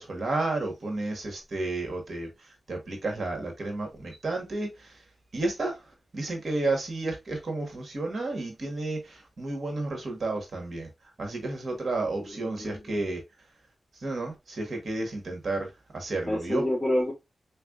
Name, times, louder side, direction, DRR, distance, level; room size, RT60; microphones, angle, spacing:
voice 1, 0.0-5.0 5.3-5.8 6.1-10.9 11.2-13.2 14.0-16.6, right 2 dB, 60° right, 1.6 m, -32 dB
voice 2, 12.3-13.0 16.3-17.1, left 1 dB, 10° left, 1.8 m, -28 dB
3.6 x 3.2 x 2.4 m
cardioid pair, 50°, 0 cm